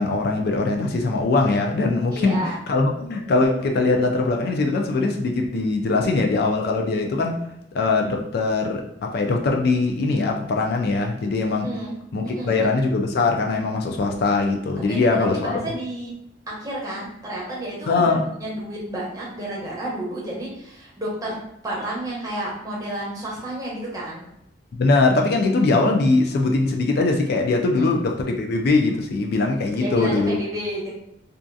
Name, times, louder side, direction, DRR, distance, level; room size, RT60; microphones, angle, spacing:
voice 1, 0.0-7.4 7.7-11.7 12.1-15.6 17.9-18.3 24.7-30.4, left 3 dB, 60° left, 2 dB, 0.3 m, -21 dB
voice 2, 2.1-2.5 11.6-12.0 12.2-12.9 14.9-16.1 16.5-18.0 18.4-21.4 21.6-24.2 27.8-27.9 29.8-30.9, right 1 dB, 20° right, -5 dB, 0.8 m, -31 dB
2.6 x 2.4 x 2.3 m, 0.78 s
head